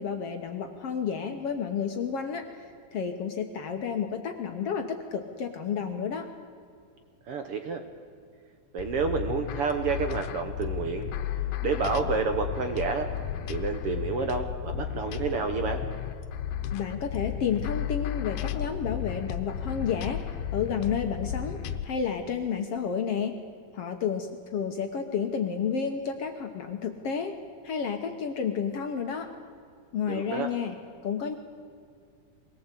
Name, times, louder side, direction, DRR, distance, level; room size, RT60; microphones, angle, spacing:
voice 1, 0.0-2.7 2.9-6.3 16.7-20.2 20.5-21.6 21.8-23.4 23.7-27.4 27.6-29.3 29.9-30.8 31.0-31.4, left 7 dB, 60° left, 5 dB, 1.7 m, -31 dB
voice 2, 7.3-7.8 8.7-11.1 11.6-13.1 13.5-15.8 30.1-30.5, right 5 dB, 60° right, 6 dB, 1.6 m, -29 dB
sound 1, 8.8-21.9, left 10 dB, 80° left, 2.4 m, -33 dB
22.5 x 18.0 x 8.3 m, 2.2 s
omnidirectional pair, 3.7 m